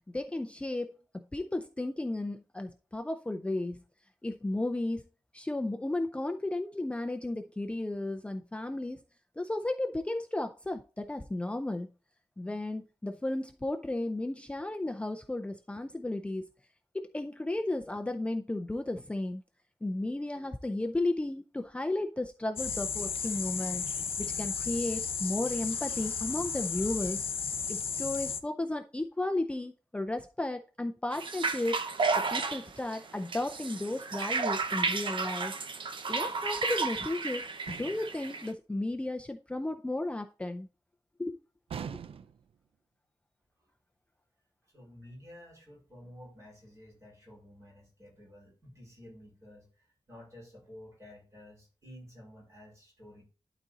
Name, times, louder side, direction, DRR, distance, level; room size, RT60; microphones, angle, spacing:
voice 1, 0.1-3.8 4.2-5.0 5.3-9.0 9.4-11.9 12.4-16.5 16.9-19.4 19.8-23.9 24.2-27.2 27.7-31.8 32.2-35.5 36.1-40.7 41.2-41.4 41.9-42.0, left 2 dB, 15° left, 0.5 m, -34 dB
sound 1, 22.6-28.4, left 6 dB, 85° left, 0.8 m, -34 dB
sound 2, 31.1-38.5, right 4 dB, 65° right, 0.8 m, -32 dB
sound 3, 37.7-38.2 41.7-42.5, right 7 dB, 85° right, 0.4 m, -41 dB
voice 2, 44.6-53.2, left 1 dB, 35° right, 4.4 m, -52 dB
12.0 x 4.1 x 3.8 m
wide cardioid pair, 165°, 9 cm